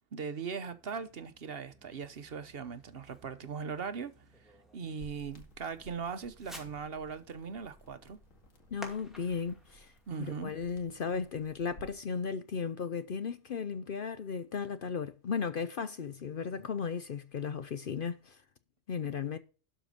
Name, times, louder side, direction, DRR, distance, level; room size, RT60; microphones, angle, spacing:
voice 1, 0.1-4.1 4.4-8.2 10.1-10.5, right 6 dB, 55° right, 1.0 m, -39 dB
Fireworks, 0.6-11.3, equal, ahead, 2.4 m, -55 dB
sound 1, 5.0-12.0, equal, 85° left, 2.3 m, -57 dB
voice 2, 8.7-9.9 10.2-18.4 18.9-19.4, left 6 dB, 55° left, 0.7 m, -35 dB
12.0 x 5.0 x 5.2 m
omnidirectional pair, 1.3 m